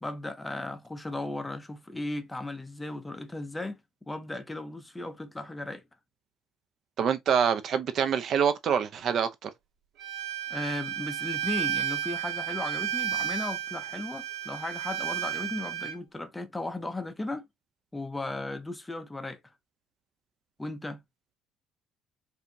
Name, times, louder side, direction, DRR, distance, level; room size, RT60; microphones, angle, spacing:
voice 1, 0.0-3.8 4.1-5.8 10.5-17.5 17.9-19.4 20.6-21.0, left 2 dB, 10° left, 0.5 m, -36 dB
voice 2, 7.0-9.5, right 7 dB, 40° right, 0.5 m, -26 dB
Bowed string instrument, 10.0-15.9, right 10 dB, 75° right, 1.4 m, -32 dB
4.8 x 2.6 x 2.7 m
cardioid pair, 170°, 0 cm